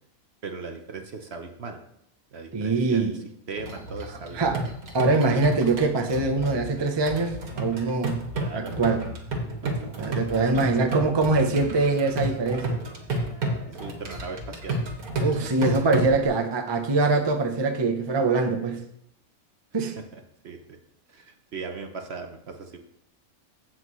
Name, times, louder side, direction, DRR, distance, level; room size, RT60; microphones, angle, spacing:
voice 1, 0.4-1.8 2.3-4.6 8.3-8.7 9.6-9.7 10.1-10.5 10.8-10.9 13.7-14.8 15.2-15.5 20.0-20.8 21.1-22.8, right 4 dB, 50° right, 5 dB, 1.0 m, -38 dB
voice 2, 2.5-3.2 4.3-4.6 4.9-8.2 8.5-9.0 10.0-12.8 15.2-18.8 19.7-19.9, right 3 dB, 25° right, 4 dB, 0.6 m, -23 dB
sound 1, 3.6-16.3, right 1 dB, 85° right, 2.1 m, -31 dB
15.5 x 5.8 x 3.1 m, 0.74 s
omnidirectional pair, 1.5 m